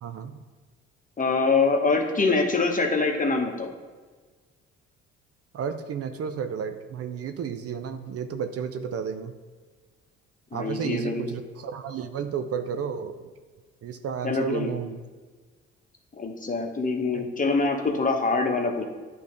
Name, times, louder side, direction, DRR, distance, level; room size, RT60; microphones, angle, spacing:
voice 1, 0.0-0.4 5.5-9.3 10.5-13.3 13.8-15.0 17.1-17.3, right 7 dB, 50° right, 8 dB, 0.6 m, -32 dB
voice 2, 1.2-3.7 10.5-11.2 14.2-14.7 16.2-18.9, left 3 dB, 25° left, 2 dB, 1.2 m, -24 dB
10.5 x 3.5 x 3.3 m, 1.4 s
hypercardioid pair, 55°, 30 cm